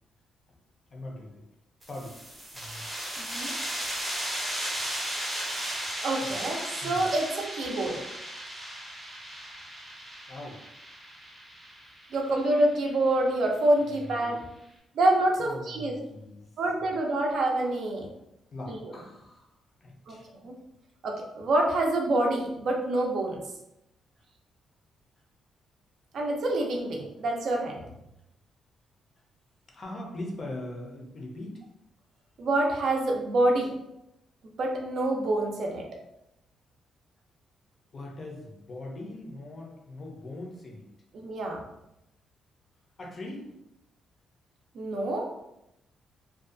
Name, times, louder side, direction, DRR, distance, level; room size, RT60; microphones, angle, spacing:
voice 1, 0.9-1.4 1.8-2.2 2.5-2.8 6.8-7.0 10.3-10.6 13.9-14.4 15.4-16.5 16.8-17.0 18.5-19.5 19.8-20.3 29.7-31.6 37.9-40.9 43.0-43.5, left 1 dB, 35° left, 0 dB, 0.5 m, -41 dB
sound 1, 1.8-13.1, right 1 dB, 10° right, 0.6 m, -36 dB
voice 2, 3.2-3.5 6.0-8.0 12.1-14.4 14.9-16.0 16.6-18.1 18.7-18.8 20.1-20.2 20.4-20.5 21.0-23.4 26.1-27.8 32.4-33.7 34.6-35.8 41.1-41.6 44.7-45.3, right 1 dB, 55° right, 0 dB, 0.5 m, -26 dB
2.5 x 2.2 x 2.5 m, 0.86 s
cardioid pair, 155°, 0 cm